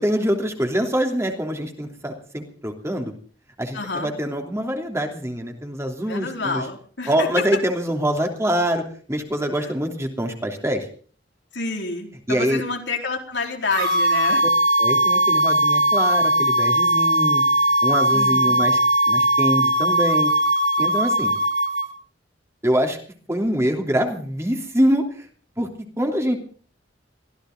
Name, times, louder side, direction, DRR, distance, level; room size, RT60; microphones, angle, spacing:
voice 1, 0.0-3.1 3.6-6.6 7.1-8.8 9.1-10.8 12.3-12.6 14.8-17.4 17.8-18.8 19.1-20.3 20.8-21.3 22.6-23.0 23.3-25.0 25.6-25.7 26.0-26.4, equal, 15° right, 3 dB, 3.1 m, -24 dB
voice 2, 3.7-4.1 6.1-7.4 9.6-9.7 11.5-14.4 18.1-18.6, left 4 dB, 80° left, 2 dB, 4.2 m, -28 dB
sound 1, 13.7-21.9, right 1 dB, 75° right, 5.3 m, -19 dB
23.5 x 15.5 x 3.9 m, 0.43 s
head